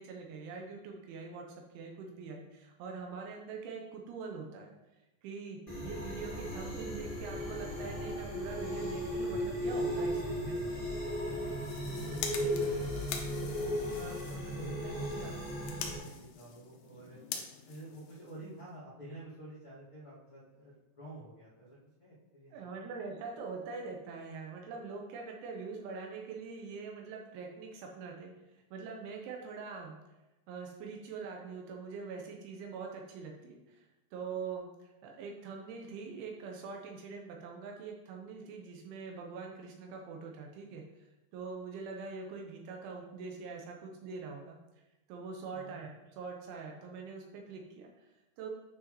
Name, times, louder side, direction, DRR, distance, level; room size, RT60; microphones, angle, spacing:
voice 1, 0.0-4.7 5.2-10.6 22.5-30.0 30.5-41.1 41.3-44.6 45.1-48.5, right 4 dB, 80° right, 1 dB, 2.9 m, -44 dB
sound 1, 5.7-16.0, equal, 20° left, 1.3 m, -36 dB
voice 2, 5.8-6.1 12.0-13.4 13.9-17.2 17.6-22.6 45.5-45.8, equal, 70° left, -10 dB, 1.2 m, -48 dB
sound 2, 11.4-18.7, left 7 dB, 90° left, 2.4 m, -45 dB
9.5 x 6.0 x 3.0 m, 1.0 s
omnidirectional pair, 5.9 m